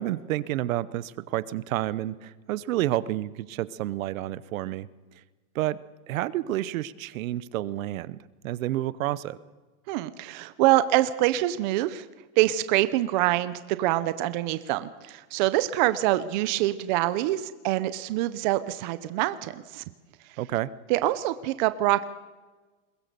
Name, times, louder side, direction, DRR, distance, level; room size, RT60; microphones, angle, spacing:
voice 1, 0.0-4.9 5.5-5.8 6.1-9.4 20.4-20.7, right 14 dB, 65° right, 18 dB, 0.9 m, -30 dB
voice 2, 9.9-12.1 12.4-19.8 20.9-22.0, right 15 dB, 35° right, 13 dB, 0.6 m, -25 dB
22.0 x 19.0 x 6.8 m, 1.3 s
supercardioid pair, 165°, 44 cm